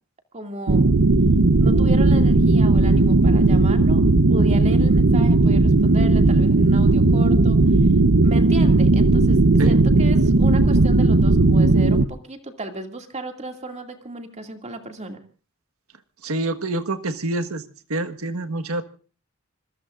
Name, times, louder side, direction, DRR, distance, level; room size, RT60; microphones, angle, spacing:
voice 1, 0.3-0.9 1.6-4.0 4.3-7.6 8.2-9.4 9.6-15.2, right 2 dB, 30° right, 4 dB, 2.3 m, -34 dB
sound 1, 0.7-12.1, right 2 dB, 70° right, 0.9 m, -16 dB
voice 2, 16.2-17.6 17.9-18.8, right 2 dB, 90° right, 9 dB, 1.5 m, -26 dB
26.5 x 21.5 x 2.5 m, 0.38 s
head